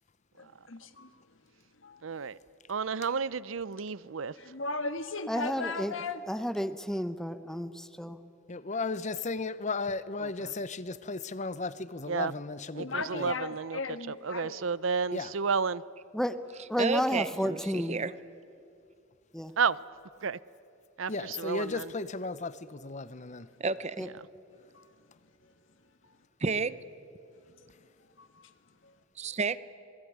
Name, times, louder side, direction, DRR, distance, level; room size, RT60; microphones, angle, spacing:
voice 1, 0.4-1.2 1.8-2.0 4.4-6.2 8.7-8.8 12.8-14.7 24.7-24.9 26.0-26.1 28.2-28.5 28.8-28.9, left 3 dB, 70° left, 1.6 m, -37 dB
voice 2, 2.0-2.4 2.7-4.3 10.2-10.5 12.1-12.3 12.8-13.8 14.1-15.8 19.6-19.8 20.2-20.4 21.0-21.9, right 5 dB, 85° right, 0.7 m, -31 dB
voice 3, 5.3-5.9 6.3-8.2 16.1-16.4 16.7-18.0 19.3-19.5 24.0-24.1, equal, 5° left, 1.0 m, -31 dB
voice 4, 8.5-13.3 15.1-15.3 21.1-23.5, left 3 dB, 40° left, 0.8 m, -35 dB
voice 5, 16.8-18.1 23.6-24.1 26.4-26.8 29.2-29.6, right 4 dB, 35° right, 0.7 m, -31 dB
27.0 x 20.0 x 9.5 m
head